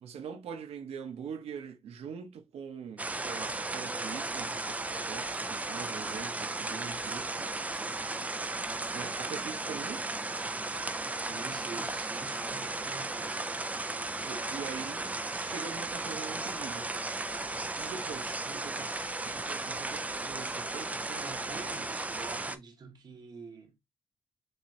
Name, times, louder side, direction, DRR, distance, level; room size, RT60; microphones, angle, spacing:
voice 1, 0.0-7.6 8.9-10.1 14.2-16.9 17.7-18.9 19.2-21.4, right 7 dB, 75° right, 1.0 m, -43 dB
sound 1, 3.0-22.6, right 2 dB, 15° right, 0.4 m, -35 dB
voice 2, 11.2-13.3 21.2-23.8, right 5 dB, 40° right, 1.1 m, -46 dB
6.5 x 3.0 x 2.6 m
wide cardioid pair, 155°, 10 cm